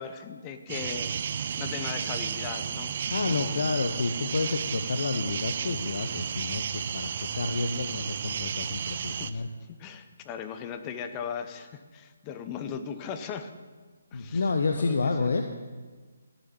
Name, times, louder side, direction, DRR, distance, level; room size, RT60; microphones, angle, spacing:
voice 1, 0.0-3.0 3.2-3.7 9.1-9.4 9.7-13.5 14.1-15.3, left 7 dB, 20° left, 8 dB, 0.8 m, -38 dB
sound 1, 0.7-9.3, right 7 dB, 45° right, 0.5 m, -33 dB
voice 2, 3.1-9.5 14.1-15.5, left 3 dB, 60° left, 5 dB, 0.8 m, -29 dB
13.0 x 7.3 x 7.3 m, 1.4 s
figure-of-eight pair, 145°, 0 cm